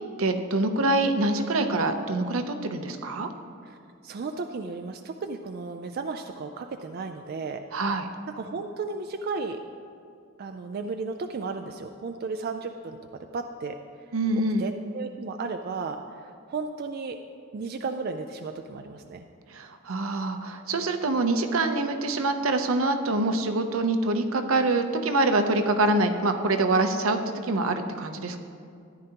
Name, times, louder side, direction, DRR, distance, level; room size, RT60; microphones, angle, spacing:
voice 1, 0.2-3.3 7.7-8.1 14.1-14.7 19.5-28.4, right 2 dB, 75° right, 6 dB, 0.7 m, -25 dB
voice 2, 4.0-7.6 8.4-9.6 10.4-13.0 13.3-14.1 14.6-17.2 17.5-19.2, right 4 dB, 45° right, 5 dB, 0.4 m, -34 dB
14.0 x 10.0 x 2.9 m, 2.3 s
head